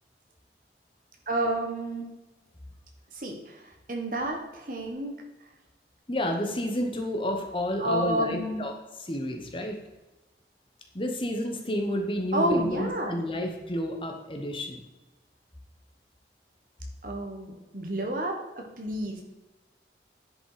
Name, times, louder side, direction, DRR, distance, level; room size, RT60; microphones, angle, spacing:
voice 1, 1.3-2.1 3.1-5.2 7.8-8.6 12.3-13.2 17.0-19.2, right 1 dB, 50° right, 2 dB, 1.6 m, -30 dB
voice 2, 6.1-8.7 9.0-9.8 10.9-14.8, equal, 30° left, 4 dB, 1.1 m, -30 dB
10.0 x 5.2 x 5.1 m, 1.0 s
head